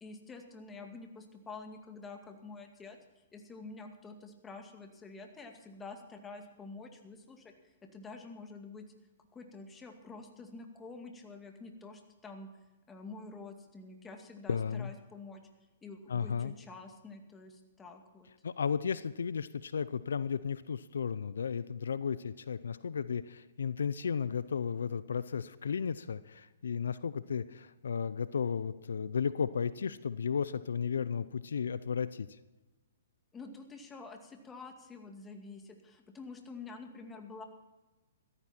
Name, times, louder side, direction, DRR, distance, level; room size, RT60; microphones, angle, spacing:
voice 1, 0.0-3.0 3.3-8.9 9.3-12.5 12.9-15.4 15.8-18.3 33.3-37.4, left 3 dB, 15° left, 4 dB, 2.2 m, -48 dB
voice 2, 14.5-14.9 16.1-16.5 18.4-32.4, left 6 dB, 80° left, 16 dB, 0.6 m, -34 dB
16.5 x 14.0 x 4.5 m, 1.1 s
hypercardioid pair, 135°, 0 cm